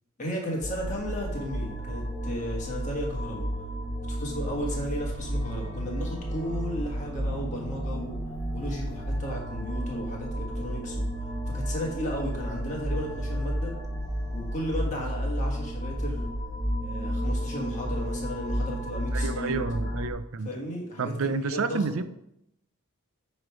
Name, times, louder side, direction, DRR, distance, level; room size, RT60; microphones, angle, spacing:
voice 1, 0.2-3.5 4.1-8.2 8.5-11.1 11.5-13.7 14.3-16.2 16.8-19.6 20.4-22.0, equal, 35° left, -1 dB, 1.5 m, -34 dB
sound 1, 0.6-20.1, equal, 15° left, 0.8 m, -32 dB
voice 2, 19.1-20.5 21.0-22.0, right 4 dB, 70° right, 12 dB, 0.4 m, -30 dB
8.8 x 3.2 x 4.7 m, 0.78 s
head